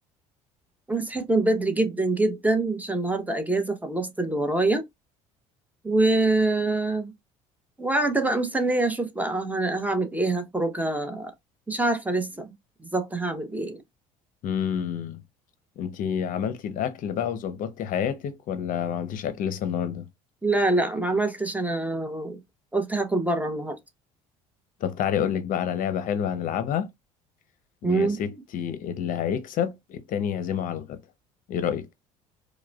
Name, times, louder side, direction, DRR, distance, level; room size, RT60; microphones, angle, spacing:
voice 1, 0.9-4.8 5.8-7.1 7.8-11.3 11.7-12.5 12.9-13.8 20.4-22.4 22.7-23.8 27.8-28.2, right 2 dB, 10° right, 0.9 m, -25 dB
voice 2, 14.4-15.2 15.8-20.1 24.8-26.9 27.8-31.0 31.5-31.9, left 8 dB, 55° left, 0.6 m, -28 dB
4.7 x 2.1 x 2.3 m
hypercardioid pair, 70°, 16 cm